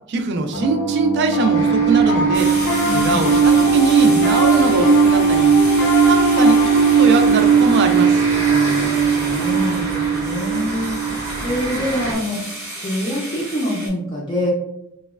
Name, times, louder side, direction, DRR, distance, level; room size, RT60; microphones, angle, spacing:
voice 1, 0.1-2.5 2.9-5.5 6.0-8.2, right 3 dB, 50° right, 7 dB, 0.3 m, -22 dB
Piano, 0.5-12.0, right 5 dB, 85° left, 0.6 m, -17 dB
sound 1, 1.5-12.1, right 1 dB, 85° right, 0.7 m, -30 dB
sound 2, 2.3-13.9, right 1 dB, 10° right, 0.7 m, -33 dB
voice 2, 2.8-3.3 8.4-11.0 11.4-12.4 12.7-14.5, left 1 dB, 20° left, -5 dB, 0.4 m, -25 dB
3.0 x 2.2 x 2.2 m, 0.83 s
head